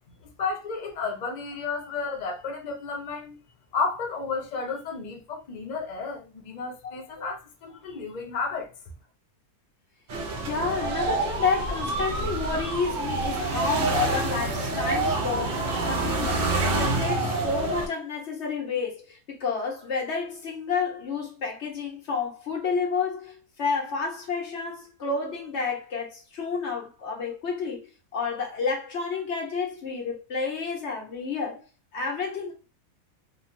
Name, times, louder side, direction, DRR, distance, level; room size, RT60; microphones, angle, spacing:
voice 1, 0.4-3.4 3.7-8.7, left 4 dB, 80° left, 0.4 m, -32 dB
voice 2, 6.8-7.3 10.4-16.5 16.8-31.6 31.9-32.5, left 5 dB, 50° left, 1.1 m, -30 dB
sound 1, 10.1-17.9, right 3 dB, 65° right, 0.5 m, -27 dB
2.9 x 2.2 x 2.5 m
omnidirectional pair, 1.6 m